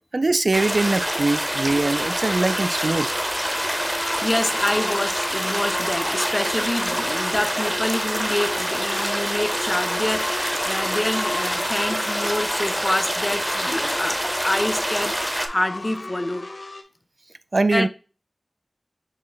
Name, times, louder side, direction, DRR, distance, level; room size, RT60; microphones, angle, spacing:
voice 1, 0.1-3.1 17.5-17.9, right 2 dB, 60° right, 0.3 m, -22 dB
sound 1, 0.5-15.5, equal, 15° right, 0.6 m, -26 dB
sound 2, 1.8-16.8, left 2 dB, 65° left, 0.8 m, -35 dB
voice 2, 3.8-16.5 17.7-17.9, left 1 dB, 30° left, 0.4 m, -27 dB
6.0 x 2.1 x 3.9 m
wide cardioid pair, 45°, 0 cm